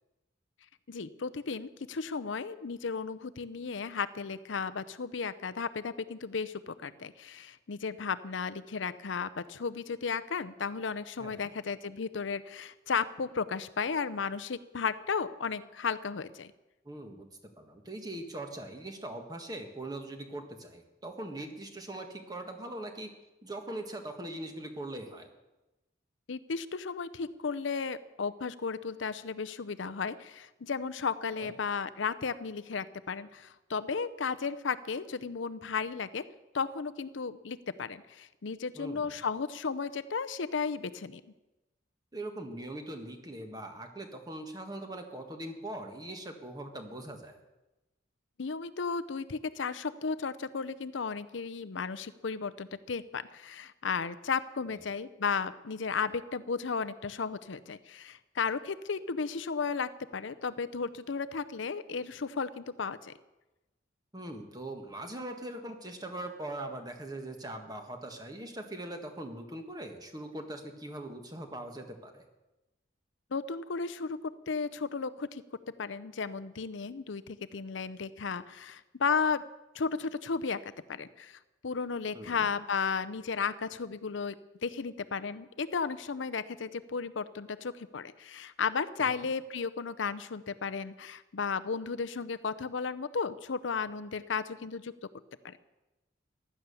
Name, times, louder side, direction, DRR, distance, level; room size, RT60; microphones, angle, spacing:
voice 1, 0.9-16.5 26.3-36.2 36.5-41.2 48.4-63.1 73.3-75.4 75.8-79.4 79.7-84.4 84.6-94.9 95.4-95.6, left 5 dB, 75° left, 13 dB, 0.6 m, -34 dB
voice 2, 11.2-11.5 16.8-17.3 17.6-23.1 23.4-25.3 31.4-31.5 38.7-39.1 42.1-47.4 64.1-72.2 82.1-82.5 89.0-89.1, right 1 dB, 20° right, 5 dB, 1.6 m, -41 dB
15.5 x 11.0 x 6.9 m, 1.0 s
head